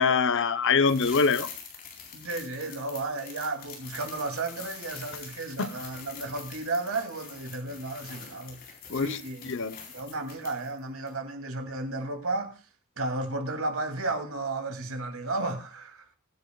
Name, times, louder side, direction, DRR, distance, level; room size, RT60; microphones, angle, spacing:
voice 1, 0.0-1.5 5.6-5.7 8.9-9.2 9.4-9.8, left 5 dB, 60° left, 0.8 m, -24 dB
sound 1, 0.8-10.8 11.1-11.2, left 6 dB, 45° left, 3.9 m, -44 dB
voice 2, 2.1-8.6 8.9-9.5 9.9-12.6 13.0-16.1, right 2 dB, 70° right, 2.6 m, -33 dB
21.5 x 9.9 x 2.3 m
head